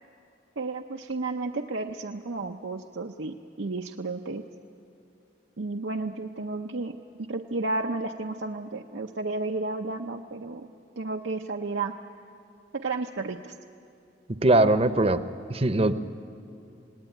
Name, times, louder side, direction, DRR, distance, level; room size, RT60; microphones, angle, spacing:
voice 1, 0.6-4.4 5.6-6.9 7.2-10.7 11.0-12.0 12.7-13.5, right 3 dB, 85° right, 3 dB, 0.8 m, -32 dB
voice 2, 14.4-15.2 15.5-15.9, right 2 dB, 30° right, 12 dB, 0.8 m, -20 dB
27.5 x 19.0 x 9.2 m, 2.6 s
head